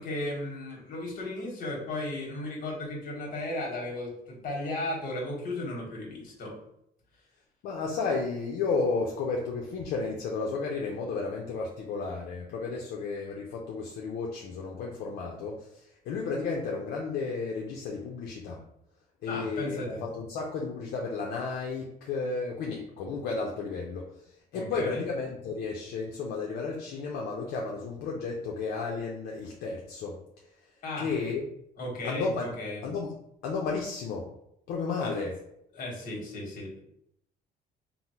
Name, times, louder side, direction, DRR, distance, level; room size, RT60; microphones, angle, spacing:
voice 1, 0.0-6.6 19.3-20.0 24.5-25.0 30.8-31.1 31.8-32.8 35.0-35.1 35.7-36.8, left 1 dB, 55° left, -2 dB, 1.2 m, -35 dB
voice 2, 7.6-18.6 19.2-24.1 24.5-30.2 31.0-31.5 32.0-32.5 32.8-33.1 33.4-34.3 34.7-35.3, left 4 dB, 75° left, -1 dB, 0.5 m, -33 dB
3.7 x 2.0 x 2.8 m, 0.75 s
cardioid pair, 110°, 17 cm